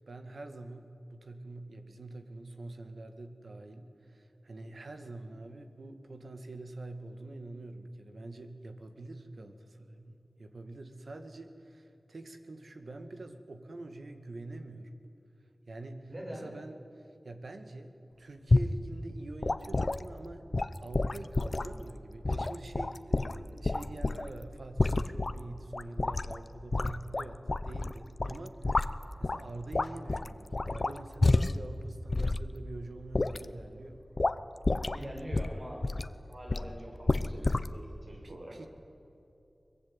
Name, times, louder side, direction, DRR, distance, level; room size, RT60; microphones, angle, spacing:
voice 1, 0.0-14.9 15.7-20.5 20.8-34.0 38.1-38.7, right 2 dB, 80° right, 7 dB, 2.1 m, -45 dB
voice 2, 16.1-16.5 34.9-35.9 36.3-38.6, equal, 55° right, -2 dB, 7.7 m, -44 dB
sound 1, 18.5-18.8 19.4-20.0 20.5-21.8 22.2-24.3 24.8-25.4 25.7-26.4 26.7-27.9 28.2-29.4 29.7-31.7 32.1-32.4 33.1-33.5 34.2-34.4 34.6-35.1 35.3-36.1 36.5-36.7 37.1-37.7, left 2 dB, 50° left, 0.8 m, -29 dB
23.0 x 22.0 x 9.7 m, 2.8 s
wide cardioid pair, 50°, 0 cm